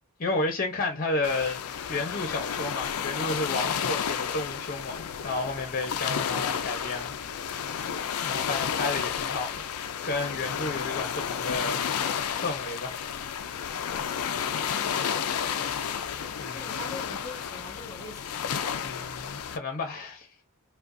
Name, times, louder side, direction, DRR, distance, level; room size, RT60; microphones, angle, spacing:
voice 1, 0.2-7.2 8.2-9.7 10.0-13.1 16.4-16.8 18.8-20.3, left 2 dB, 40° left, 0.9 m, -32 dB
sound 1, 1.2-19.6, left 8 dB, 80° left, 0.5 m, -31 dB
voice 2, 14.7-15.8 16.5-18.4, left 1 dB, 20° left, 1.4 m, -44 dB
5.0 x 2.3 x 2.6 m
head